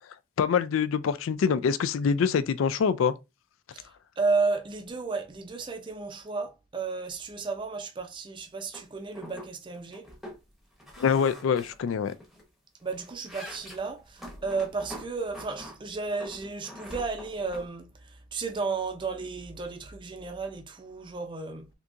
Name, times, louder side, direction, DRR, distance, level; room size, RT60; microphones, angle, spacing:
voice 1, 0.4-3.1 11.0-12.1, left 6 dB, 80° left, 0.3 m, -25 dB
voice 2, 4.2-10.1 12.8-21.7, right 4 dB, 25° right, 0.5 m, -33 dB
creaking floor, 8.7-8.8 9.1-9.5 9.7-10.4 10.8-12.4 12.8-15.8 16.2-17.7, equal, ahead, 0.8 m, -44 dB
3.5 x 2.8 x 2.5 m
head